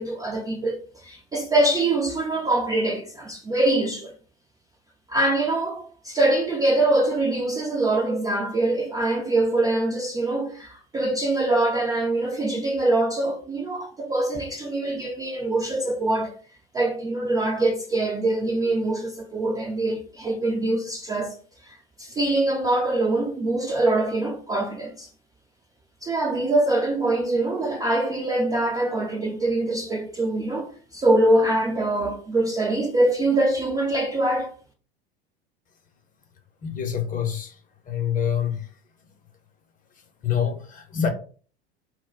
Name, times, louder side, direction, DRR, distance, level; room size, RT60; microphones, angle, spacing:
voice 1, 0.0-4.1 5.1-16.4 16.7-25.1 26.0-34.5, right 2 dB, 10° right, 0.4 m, -24 dB
voice 2, 36.6-37.6 37.9-38.7 40.2-41.1, left 8 dB, 25° left, 0.7 m, -26 dB
2.1 x 2.0 x 3.7 m
figure-of-eight pair, 80°, 31 cm